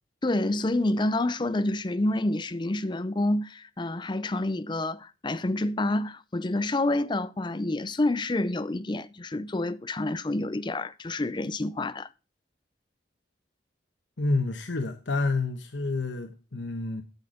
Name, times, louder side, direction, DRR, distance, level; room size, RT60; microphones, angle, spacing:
voice 1, 0.2-12.1, left 2 dB, 25° left, 0.5 m, -28 dB
voice 2, 14.2-17.0, left 3 dB, 85° left, 1.1 m, -29 dB
9.8 x 8.1 x 5.1 m
head